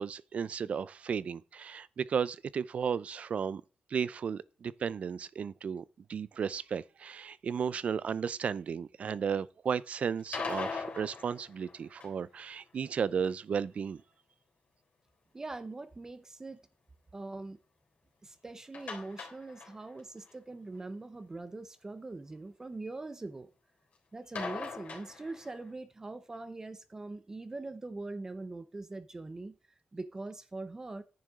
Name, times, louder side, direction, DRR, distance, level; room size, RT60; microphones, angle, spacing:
voice 1, 0.0-3.6 3.9-5.8 6.1-14.0, right 7 dB, 55° right, 0.5 m, -34 dB
sound 1, 10.2-12.4 18.7-20.0 20.3-20.4 20.7-20.8 24.3-25.7, left 4 dB, 70° left, 3.6 m, -40 dB
voice 2, 15.3-16.6 17.1-17.6 18.2-23.5 24.1-29.6 29.9-31.0, right 2 dB, 20° right, 0.7 m, -42 dB
10.5 x 9.4 x 3.7 m
wide cardioid pair, 160°, 3 cm